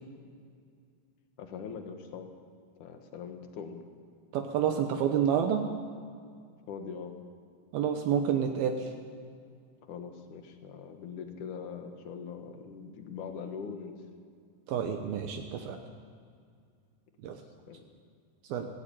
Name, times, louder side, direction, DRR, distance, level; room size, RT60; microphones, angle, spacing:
voice 1, 1.4-2.3 2.8-3.8 6.7-7.1 9.9-14.0 17.7-17.8, left 6 dB, 60° left, 5 dB, 2.8 m, -42 dB
voice 2, 4.3-5.7 7.7-8.9 14.7-15.8 17.2-17.4 18.5-18.7, right 8 dB, 75° right, 4 dB, 2.8 m, -29 dB
17.5 x 17.0 x 9.0 m, 2.2 s
omnidirectional pair, 4.6 m